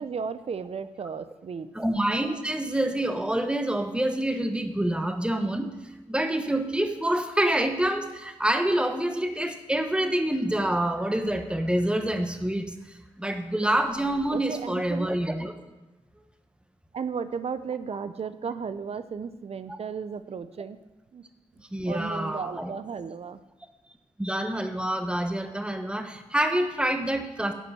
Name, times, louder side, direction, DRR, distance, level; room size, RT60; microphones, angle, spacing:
voice 1, 0.0-1.7 14.3-15.1 16.9-20.8 21.1-21.2 21.9-23.4, right 6 dB, 60° right, 12 dB, 0.5 m, -34 dB
voice 2, 1.7-5.7 6.1-15.5 21.6-22.7 24.2-27.5, right 1 dB, 10° right, 7 dB, 1.0 m, -27 dB
9.9 x 5.2 x 7.1 m, 1.1 s
cardioid pair, 60°, 12 cm